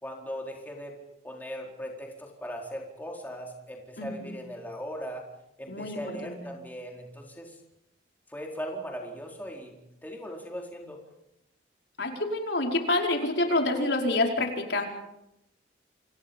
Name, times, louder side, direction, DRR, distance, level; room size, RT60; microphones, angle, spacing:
voice 1, 0.0-1.0 1.2-5.2 5.6-7.6 8.3-11.0, equal, 10° left, 0 dB, 4.3 m, -39 dB
voice 2, 4.0-4.4 5.7-6.5 12.0-14.9, left 2 dB, 65° left, 2 dB, 5.2 m, -28 dB
29.0 x 28.5 x 5.5 m, 0.85 s
head